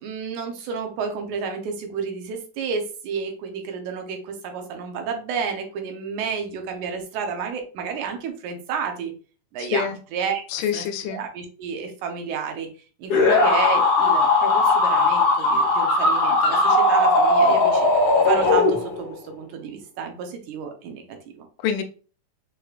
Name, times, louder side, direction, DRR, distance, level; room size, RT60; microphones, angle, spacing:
voice 1, 0.0-9.1 9.5-10.4 10.7-10.9 11.1-12.7 13.0-17.9 18.3-21.5, right 6 dB, 80° right, 4 dB, 2.2 m, -30 dB
voice 2, 9.6-10.0 10.5-11.2 21.6-21.8, left 8 dB, 85° left, 6 dB, 2.2 m, -26 dB
sound 1, 13.1-19.1, left 2 dB, 50° left, 1.7 m, -18 dB
6.6 x 3.0 x 2.4 m, 0.37 s
omnidirectional pair, 3.5 m